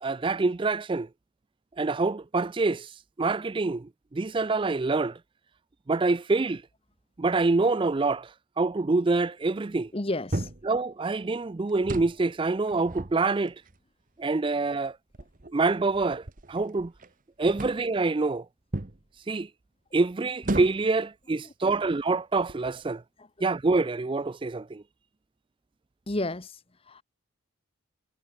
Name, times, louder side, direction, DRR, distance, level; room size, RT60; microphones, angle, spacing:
voice 1, 0.0-1.1 1.8-2.9 3.2-5.2 5.9-6.6 7.2-8.3 8.6-9.9 10.6-13.5 14.2-15.0 15.5-16.9 17.4-18.5 19.3-19.5 19.9-23.0 23.4-24.8, right 3 dB, 25° right, 0.4 m, -26 dB
voice 2, 9.9-10.5 21.4-21.5 23.2-23.3 26.1-27.0, left 2 dB, 25° left, 1.0 m, -32 dB
sound 1, 10.3-10.7 11.7-12.2 12.7-13.8 14.5-14.6 15.1-17.1 17.5-18.0 18.7-19.0 20.4-21.0 21.7-21.9 22.4-22.9, right 1 dB, 40° right, 1.1 m, -35 dB
head